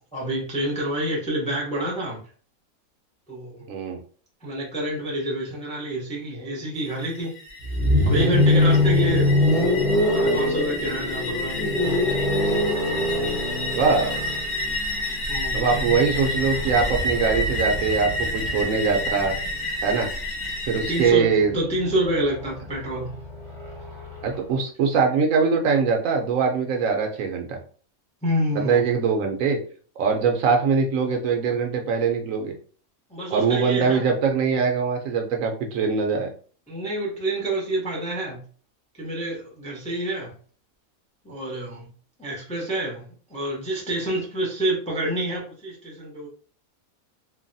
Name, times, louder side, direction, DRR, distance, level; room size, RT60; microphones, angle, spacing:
voice 1, 0.1-2.2 3.3-3.7 4.4-7.3 8.1-9.5 10.1-11.6 15.3-15.6 19.1-19.3 20.9-23.1 28.2-28.9 33.1-34.0 36.7-38.4 39.0-40.3 41.2-41.9 42.2-43.0 43.3-46.3, right 1 dB, 10° left, -3 dB, 0.4 m, -28 dB
voice 2, 3.7-4.0 13.7-14.1 15.5-19.4 19.8-20.1 20.7-21.6 24.2-27.6 28.5-29.6 30.0-32.5 33.3-36.3, right 5 dB, 70° right, 3 dB, 0.9 m, -22 dB
sound 1, 6.8-21.1, left 1 dB, 45° left, 0.9 m, -30 dB
sound 2, 7.6-19.6 20.8-24.4, left 1 dB, 25° right, 0.7 m, -24 dB
3.2 x 2.2 x 2.6 m, 0.43 s
omnidirectional pair, 1.5 m